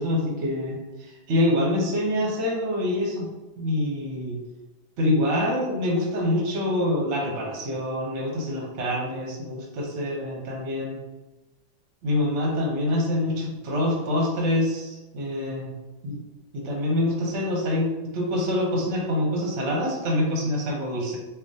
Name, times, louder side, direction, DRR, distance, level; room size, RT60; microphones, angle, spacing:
voice 1, 0.0-3.3 3.6-4.4 5.0-11.0 12.0-15.7 16.0-16.2 16.5-21.2, left 1 dB, 50° right, -1 dB, 0.8 m, -26 dB
4.2 x 2.4 x 2.6 m, 1.1 s
omnidirectional pair, 2.1 m